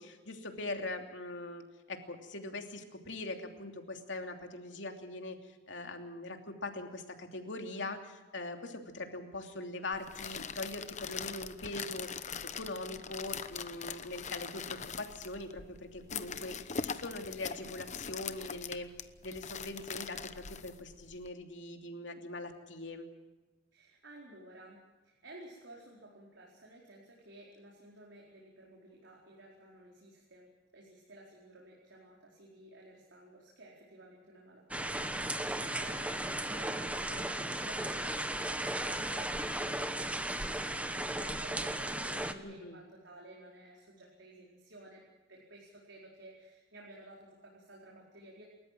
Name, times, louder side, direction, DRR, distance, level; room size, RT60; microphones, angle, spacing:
voice 1, 0.0-18.9 19.2-23.1 35.6-35.8 42.4-42.8, left 2 dB, 75° left, 4 dB, 2.9 m, -42 dB
sound 1, 9.9-21.3, left 6 dB, 40° left, 1.0 m, -42 dB
voice 2, 23.7-24.8 25.0-45.0 45.3-48.4, right 1 dB, 75° right, -3 dB, 4.7 m, -54 dB
sound 2, 34.7-42.3, right 1 dB, 5° right, 1.2 m, -35 dB
29.0 x 14.0 x 7.7 m, 1.2 s
head